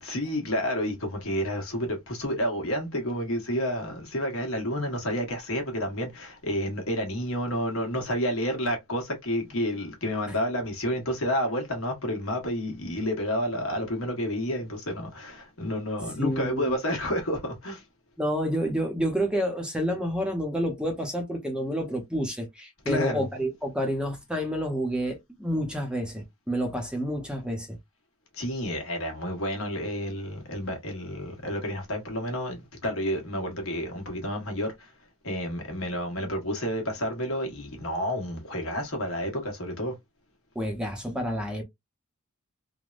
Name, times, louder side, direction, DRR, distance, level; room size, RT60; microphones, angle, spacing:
voice 1, 0.0-17.8 22.8-23.3 28.3-34.9 35.2-40.0, equal, 65° left, 1.1 m, -30 dB
voice 2, 16.2-16.8 18.2-27.7 40.6-41.6, equal, 5° right, 0.6 m, -29 dB
3.3 x 2.1 x 2.4 m
head